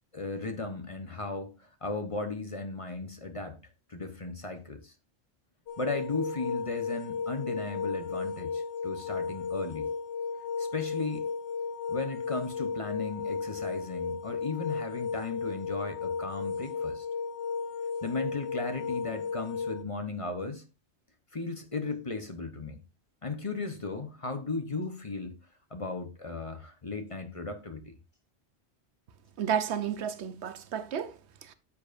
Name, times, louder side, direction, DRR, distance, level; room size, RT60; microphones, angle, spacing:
voice 1, 0.1-3.6 3.9-4.9 5.8-9.9 10.6-11.3 11.9-17.1 18.0-20.6 21.3-22.8 23.2-25.3 25.7-27.9, left 3 dB, 35° left, 0.9 m, -36 dB
sound 1, 5.7-19.8, left 5 dB, 70° left, 1.1 m, -34 dB
voice 2, 29.4-31.5, right 8 dB, 75° right, 1.0 m, -32 dB
9.9 x 7.1 x 2.5 m
omnidirectional pair, 1.1 m